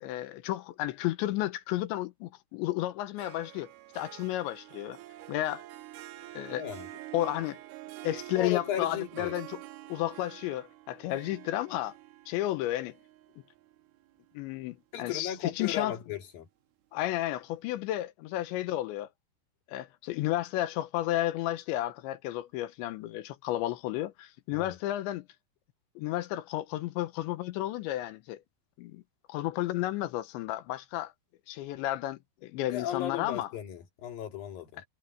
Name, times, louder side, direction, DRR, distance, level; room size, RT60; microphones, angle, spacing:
voice 1, 0.0-5.0 5.3-5.6 6.3-6.6 7.1-7.6 8.0-9.6 9.9-12.0 12.3-12.9 14.3-16.0 16.9-19.1 19.7-25.3 26.0-28.4 28.8-29.0 29.3-31.1 31.5-33.5, left 15 dB, 85° left, 3.2 m, -32 dB
Harp, 3.2-14.6, right 16 dB, 75° right, 2.5 m, -47 dB
voice 2, 6.5-6.9 8.3-9.4 14.9-16.5 24.5-24.8 32.7-34.8, left 11 dB, 55° left, 3.7 m, -35 dB
omnidirectional pair, 5.2 m